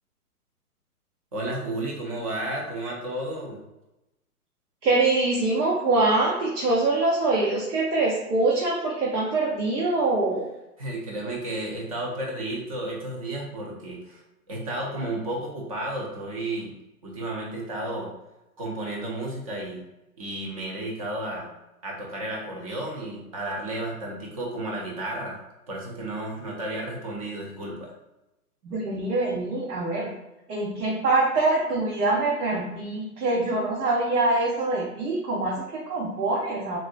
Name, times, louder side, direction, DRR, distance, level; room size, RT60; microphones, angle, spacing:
voice 1, 1.3-3.6 10.8-14.2 14.5-16.7 17.0-18.1 18.6-19.8 20.2-21.5 21.8-25.4 25.7-27.9, right 1 dB, 25° right, -1 dB, 0.5 m, -32 dB
voice 2, 4.8-10.5 28.6-30.1 30.5-36.8, right 2 dB, 75° right, -3 dB, 0.9 m, -24 dB
3.7 x 2.1 x 2.5 m, 0.94 s
hypercardioid pair, 135°, 46 cm